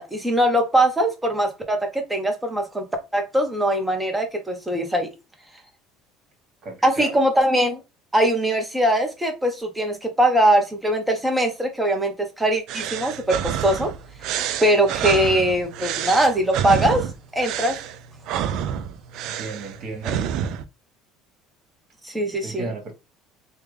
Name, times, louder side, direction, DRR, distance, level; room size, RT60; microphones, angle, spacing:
voice 1, 0.0-2.8 3.1-5.1 6.8-7.8 8.1-13.9 14.6-17.1 17.3-17.8 22.0-22.7, right 1 dB, 10° right, 0.9 m, -21 dB
voice 2, 6.6-7.2 19.2-20.2 22.4-22.9, right 3 dB, 50° right, 1.6 m, -33 dB
sound 1, 12.7-20.6, right 9 dB, 65° right, 0.3 m, -28 dB
3.3 x 2.2 x 3.3 m
supercardioid pair, 110°, 0 cm